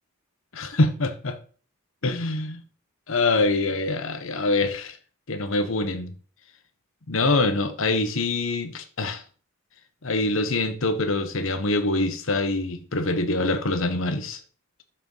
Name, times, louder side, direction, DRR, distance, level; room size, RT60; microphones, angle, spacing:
voice 1, 0.5-1.4 2.0-2.6 3.1-5.0 5.3-6.1 7.1-9.2 10.0-14.4, left 2 dB, 70° left, 1.0 m, -24 dB
12.5 x 4.4 x 3.9 m
head